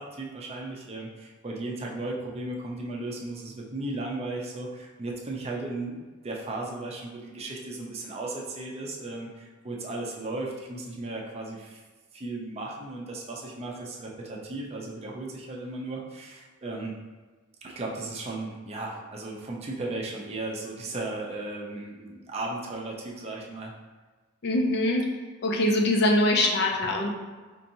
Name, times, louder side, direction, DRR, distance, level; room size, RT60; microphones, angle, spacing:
voice 1, 0.0-11.8 12.1-16.9 17.6-23.7, right 2 dB, 30° right, -2 dB, 0.5 m, -36 dB
voice 2, 24.4-25.0 25.4-27.1, left 1 dB, 55° left, 1 dB, 0.5 m, -23 dB
4.5 x 2.8 x 2.6 m, 1.3 s
head